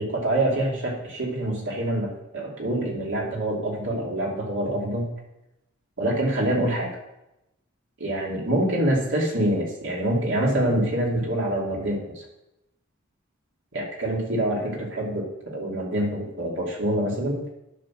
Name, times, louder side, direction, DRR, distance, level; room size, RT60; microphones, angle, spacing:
voice 1, 0.0-5.1 6.0-6.9 8.0-12.2 13.7-17.4, right 1 dB, 60° right, -2 dB, 2.7 m, -26 dB
10.0 x 6.1 x 6.2 m, 0.90 s
head